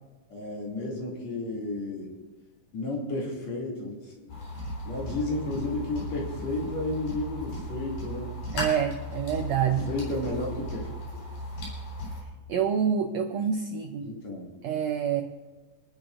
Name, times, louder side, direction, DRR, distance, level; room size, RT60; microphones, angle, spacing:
voice 1, 0.3-2.1 2.7-4.3 4.8-8.3 9.6-10.9 14.0-14.5, left 2 dB, 50° left, -3 dB, 3.6 m, -32 dB
sound 1, 4.3-12.2, equal, 80° left, 5.9 m, -36 dB
voice 2, 8.5-9.9 12.5-14.1 14.6-15.2, right 8 dB, 85° right, 5 dB, 1.5 m, -27 dB
29.5 x 10.5 x 2.6 m, 1.2 s
omnidirectional pair, 4.0 m